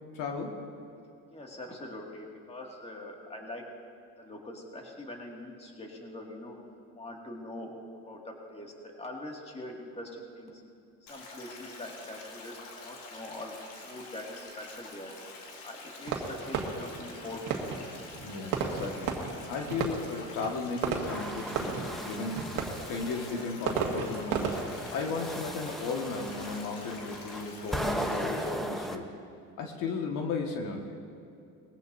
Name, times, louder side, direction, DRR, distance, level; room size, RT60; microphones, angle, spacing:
voice 1, 0.1-0.6 18.2-19.2 19.5-24.6 24.9-29.0 29.6-30.9, left 4 dB, 70° left, 1 dB, 1.7 m, -35 dB
voice 2, 1.3-3.6 4.2-6.6 6.9-7.7 8.1-10.6 11.0-13.6 13.8-15.1 15.6-17.8, left 1 dB, 20° left, 0 dB, 2.2 m, -43 dB
Stream, 11.1-28.5, left 3 dB, 85° left, 2.5 m, -47 dB
Fireworks, 16.1-26.6, right 5 dB, 70° right, 1.9 m, -36 dB
sound 1, 20.9-23.5 24.1-29.0, equal, ahead, 0.8 m, -37 dB
20.5 x 15.5 x 2.7 m, 2.5 s
supercardioid pair, 105°, 34 cm